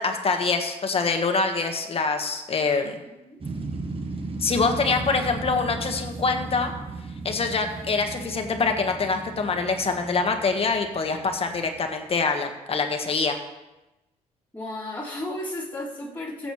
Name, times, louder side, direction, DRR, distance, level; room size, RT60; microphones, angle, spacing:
voice 1, 0.0-2.9 4.4-6.7 7.2-13.4, left 4 dB, 40° left, 5 dB, 1.6 m, -25 dB
voice 2, 3.1-3.4 14.5-16.5, left 1 dB, 10° left, -8 dB, 3.1 m, -34 dB
sound 1, 3.4-12.1, right 3 dB, 40° right, 1.5 m, -36 dB
15.5 x 8.0 x 3.3 m, 0.99 s
supercardioid pair, 75°, 15 cm